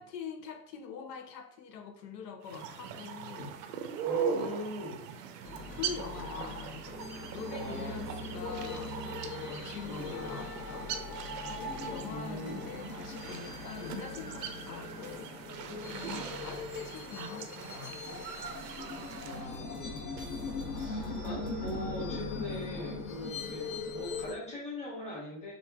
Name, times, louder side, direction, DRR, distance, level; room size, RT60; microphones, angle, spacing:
voice 1, 0.0-3.6 5.7-6.9 7.3-9.0 9.3-18.3, left 6 dB, 85° left, 6 dB, 0.6 m, -44 dB
sound 1, 2.4-19.5, right 7 dB, 80° right, 0.5 m, -41 dB
voice 2, 4.0-5.1 7.5-8.5 9.8-10.3 12.1-12.7 19.2-25.5, left 1 dB, 15° left, -4 dB, 1.1 m, -42 dB
sound 2, 5.4-24.3, left 3 dB, 40° left, 0.8 m, -40 dB
sound 3, 11.6-21.9, right 6 dB, 25° right, 0.4 m, -55 dB
2.9 x 2.4 x 2.3 m, 0.63 s
hypercardioid pair, 100°, 48 cm